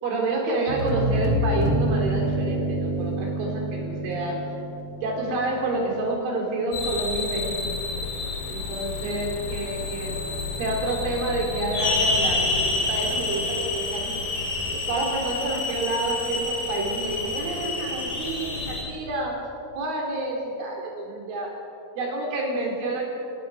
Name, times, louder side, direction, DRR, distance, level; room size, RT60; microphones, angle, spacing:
voice 1, 0.0-4.5 5.0-7.6 8.5-10.2 10.6-14.2 14.7-19.4 19.7-21.5 22.0-23.0, right 2 dB, 75° right, 0 dB, 6.2 m, -28 dB
sound 1, 0.7-5.5, right 1 dB, 55° right, 1.6 m, -27 dB
sound 2, 6.7-18.8, left 3 dB, 85° left, 7.6 m, -28 dB
30.0 x 18.0 x 6.4 m, 2.7 s
omnidirectional pair, 5.7 m